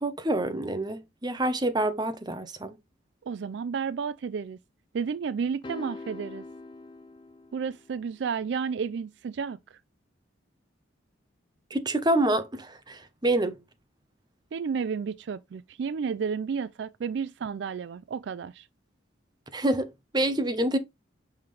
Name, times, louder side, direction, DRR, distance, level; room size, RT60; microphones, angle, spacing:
voice 1, 0.0-2.7 11.7-13.6 19.5-20.8, right 1 dB, 20° right, 0.9 m, -27 dB
voice 2, 3.2-4.6 4.9-6.4 7.5-9.8 14.5-18.7, right 6 dB, 65° right, 0.3 m, -32 dB
sound 1, 5.6-8.1, left 2 dB, 25° left, 0.6 m, -43 dB
5.8 x 5.7 x 3.2 m
head